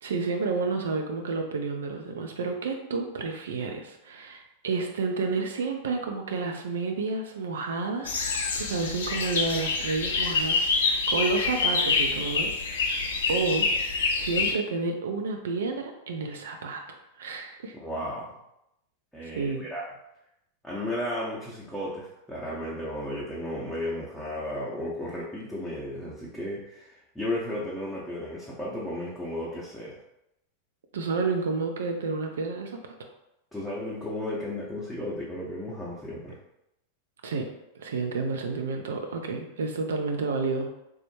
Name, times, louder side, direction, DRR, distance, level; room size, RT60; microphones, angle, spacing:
voice 1, 0.0-8.3 8.6-13.0 13.3-13.7 14.2-17.7 19.3-19.7 30.9-32.8 37.2-37.5 37.8-40.7, right 4 dB, 65° right, 3 dB, 0.3 m, -30 dB
sound 1, 8.0-14.5, left 4 dB, 60° left, 0.4 m, -26 dB
voice 2, 17.8-18.3 19.1-19.9 20.6-30.0 33.5-36.4, left 1 dB, 5° left, -8 dB, 0.6 m, -34 dB
3.3 x 2.0 x 3.1 m, 0.85 s
figure-of-eight pair, 90°, 0 cm